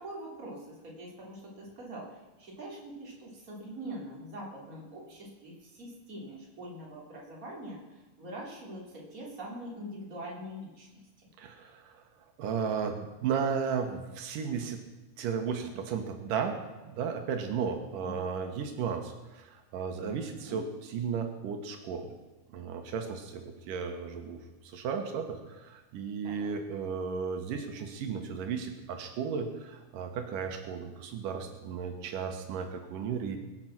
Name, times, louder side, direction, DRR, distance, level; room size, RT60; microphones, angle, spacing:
voice 1, 0.0-11.3 18.0-18.3 20.0-20.6 26.2-26.5, right 1 dB, 25° right, -3 dB, 3.6 m, -44 dB
voice 2, 11.4-12.0 12.4-14.8 15.2-20.7 20.9-22.1 22.5-24.4 24.6-33.4, right 6 dB, 90° right, 5 dB, 3.0 m, -34 dB
23.5 x 7.9 x 6.0 m, 1.2 s
omnidirectional pair, 3.7 m